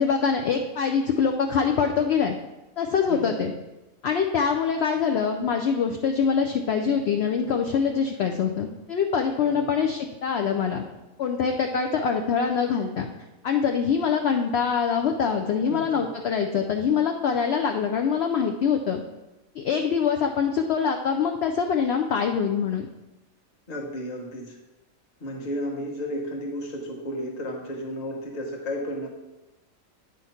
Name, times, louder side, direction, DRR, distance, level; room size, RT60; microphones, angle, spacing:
voice 1, 0.0-2.4 2.8-3.5 4.0-10.8 11.2-13.1 13.4-19.0 19.6-22.9, left 6 dB, 65° left, 4 dB, 0.7 m, -24 dB
voice 2, 3.1-3.5 9.4-9.7 15.7-16.0 23.7-24.6 25.2-29.1, equal, 30° left, -2 dB, 1.1 m, -33 dB
9.0 x 3.1 x 5.6 m, 1.0 s
omnidirectional pair, 1.5 m